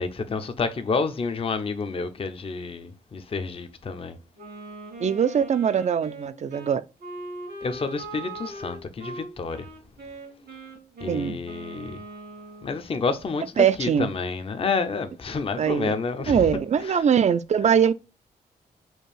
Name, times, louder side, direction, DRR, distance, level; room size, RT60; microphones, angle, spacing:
voice 1, 0.0-4.2 7.6-9.7 11.0-12.0 12.6-16.5 16.8-17.0, left 4 dB, 35° left, 0.5 m, -29 dB
Wind instrument woodwind instrument, 4.4-12.8, right 2 dB, 80° right, 1.8 m, -40 dB
voice 2, 5.0-6.8 11.1-11.4 13.6-14.1 15.6-15.9 16.3-17.9, right 8 dB, 45° right, 0.4 m, -22 dB
4.4 x 2.4 x 3.3 m
cardioid pair, 65°, 17 cm